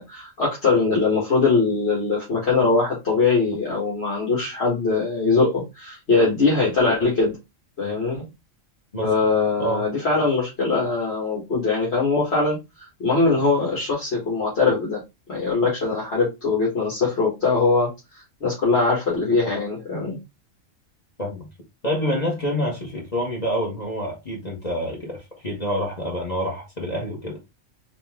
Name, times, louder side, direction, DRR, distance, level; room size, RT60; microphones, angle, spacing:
voice 1, 0.0-7.3 7.8-8.2 9.0-15.0 15.3-17.9 18.4-20.2, left 3 dB, 55° left, 1.8 m, -21 dB
voice 2, 21.8-27.4, equal, 35° left, 1.4 m, -27 dB
4.1 x 2.7 x 3.6 m
omnidirectional pair, 1.3 m